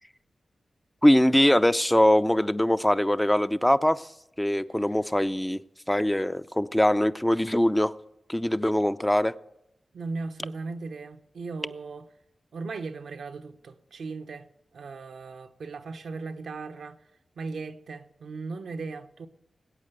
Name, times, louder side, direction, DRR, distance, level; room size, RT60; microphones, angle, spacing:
voice 1, 1.0-4.1 4.4-5.6 5.9-7.9 8.3-9.3, left 1 dB, 10° left, 0.6 m, -22 dB
voice 2, 9.9-12.1 12.5-14.5 14.7-17.0 17.4-19.3, right 4 dB, 85° right, 0.9 m, -37 dB
19.5 x 8.5 x 6.7 m
cardioid pair, 45°, 0 cm